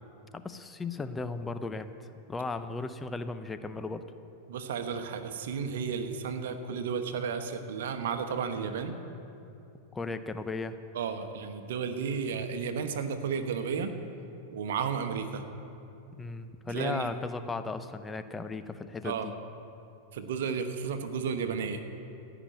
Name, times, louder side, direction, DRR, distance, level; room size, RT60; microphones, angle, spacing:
voice 1, 0.3-4.0 9.9-10.8 16.2-19.3, left 3 dB, 15° left, 10 dB, 0.7 m, -36 dB
voice 2, 4.5-8.9 10.9-13.9 14.5-15.4 16.7-17.1 19.0-19.3 20.1-21.8, right 6 dB, 70° right, 8 dB, 1.1 m, -33 dB
16.0 x 6.0 x 9.1 m, 2.8 s
hypercardioid pair, 100°, 0 cm